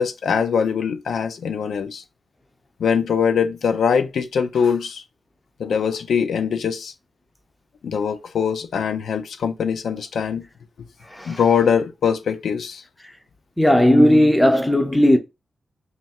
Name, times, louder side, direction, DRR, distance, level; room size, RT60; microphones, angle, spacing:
voice 1, 0.0-2.0 2.8-5.0 5.6-6.9 7.8-10.5 11.3-12.8, left 6 dB, 80° left, 0.4 m, -22 dB
voice 2, 13.6-15.2, left 1 dB, 5° left, 0.5 m, -15 dB
3.1 x 2.4 x 4.2 m
wide cardioid pair, 155°, 0 cm